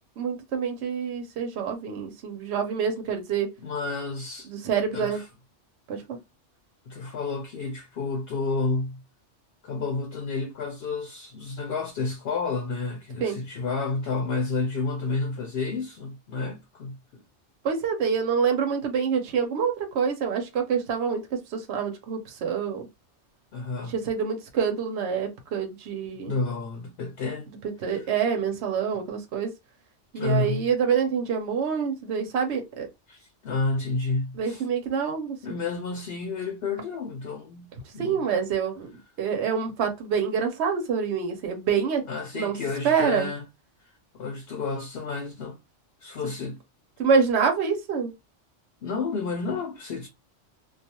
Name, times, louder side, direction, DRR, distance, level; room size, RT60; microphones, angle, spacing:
voice 1, 0.2-3.5 4.5-5.2 5.9-6.2 13.2-13.4 17.6-22.9 23.9-26.4 27.8-29.5 30.1-32.9 34.4-35.4 38.0-42.0 42.3-42.6 42.8-43.3 47.0-48.1, right 6 dB, 65° right, 0.9 m, -26 dB
voice 2, 3.6-4.5 4.9-5.2 6.9-9.0 9.6-17.2 23.5-23.9 26.2-27.5 27.9-28.1 30.2-30.7 33.1-34.6 35.4-38.2 42.0-43.4 44.1-45.6 46.0-46.6 48.8-50.1, left 3 dB, 60° left, 0.8 m, -30 dB
2.4 x 2.3 x 2.8 m
omnidirectional pair, 1.2 m